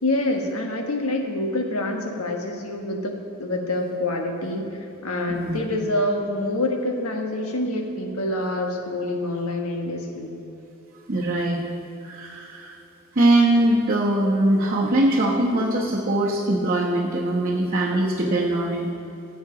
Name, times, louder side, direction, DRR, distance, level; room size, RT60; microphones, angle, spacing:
voice 1, 0.0-10.4, left 1 dB, 85° left, 3 dB, 1.3 m, -26 dB
voice 2, 5.3-5.6 11.1-11.6 12.0-12.7 13.1-18.9, right 1 dB, 40° right, -5 dB, 1.1 m, -21 dB
15.5 x 8.1 x 3.9 m, 2.9 s
head